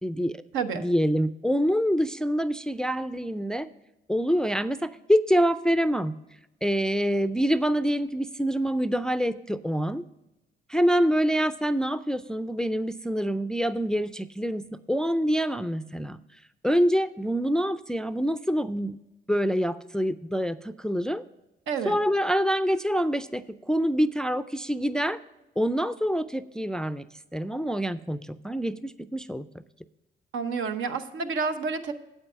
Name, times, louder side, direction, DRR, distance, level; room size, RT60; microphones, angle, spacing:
voice 1, 0.0-0.4 0.8-3.7 4.1-6.2 6.6-10.0 10.7-16.2 16.6-19.0 19.3-21.2 21.9-25.2 25.6-27.1 27.3-29.5, equal, 5° left, 13 dB, 0.3 m, -26 dB
voice 2, 21.7-22.0 30.3-31.9, right 5 dB, 80° right, 8 dB, 0.9 m, -29 dB
8.8 x 8.3 x 5.6 m, 0.95 s
cardioid pair, 90°, 20 cm